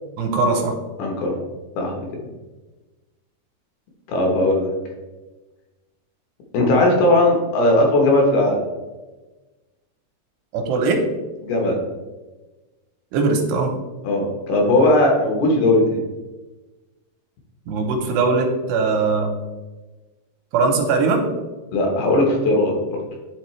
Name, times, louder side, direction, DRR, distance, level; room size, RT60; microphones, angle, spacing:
voice 1, 0.2-0.7 10.5-11.0 13.1-13.7 17.7-19.3 20.5-21.2, right 4 dB, 80° right, 2 dB, 2.8 m, -20 dB
voice 2, 1.0-1.3 1.8-2.0 4.1-4.7 6.5-8.6 11.4-11.8 14.0-16.0 21.7-23.0, left 1 dB, 70° left, 0 dB, 2.9 m, -18 dB
10.5 x 3.8 x 3.1 m, 1.2 s
omnidirectional pair, 4.9 m